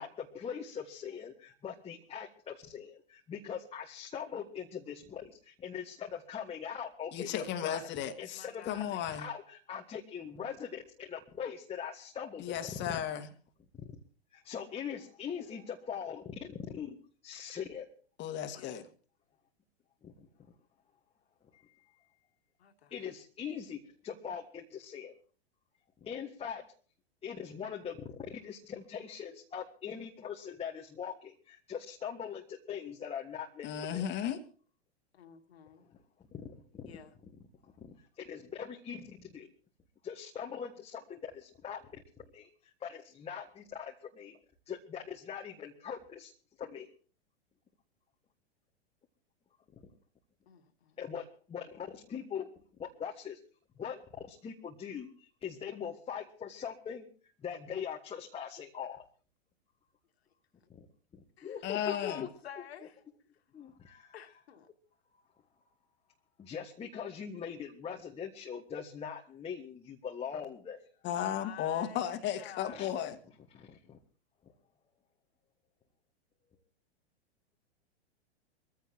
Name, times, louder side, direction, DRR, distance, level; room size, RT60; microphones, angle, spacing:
voice 1, 0.0-12.5 14.3-16.2 16.7-17.0 17.2-17.9 20.0-20.1 21.5-21.6 22.9-25.1 26.0-26.6 27.2-34.1 36.8-36.9 38.2-39.5 40.0-41.8 42.3-42.5 42.8-44.4 44.7-46.3 46.6-46.9 51.0-52.5 52.8-53.4 53.8-57.1 57.4-59.0 61.4-62.1 62.6-62.7 63.5-64.1 66.4-70.8 72.7-72.9 73.5-74.0, left 7 dB, 20° left, 1 dB, 1.6 m, -41 dB
voice 2, 7.1-9.3 12.4-13.3 18.2-18.9 33.6-34.4 61.6-62.3 71.0-73.2, left 10 dB, 35° left, 8 dB, 2.0 m, -35 dB
voice 3, 8.3-9.0 18.5-18.9 22.6-23.0 35.1-35.8 36.9-37.1 50.5-51.0 61.4-61.6 61.9-63.0 64.1-64.7 71.2-72.9, left 9 dB, 70° left, 5 dB, 2.6 m, -50 dB
23.5 x 15.5 x 2.9 m, 0.40 s
hypercardioid pair, 105°, 33 cm